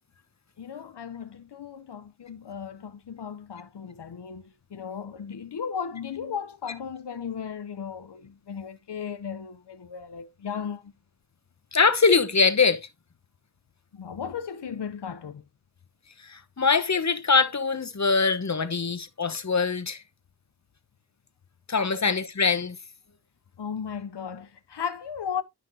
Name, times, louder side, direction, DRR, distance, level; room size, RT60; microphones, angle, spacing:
voice 1, 0.6-10.9 13.9-15.4 21.9-22.0 23.6-25.4, left 7 dB, 90° left, 0.6 m, -36 dB
voice 2, 11.7-12.9 16.2-20.0 21.7-22.8, left 4 dB, 45° left, 0.9 m, -23 dB
10.0 x 5.6 x 2.7 m
wide cardioid pair, 45°, 40 cm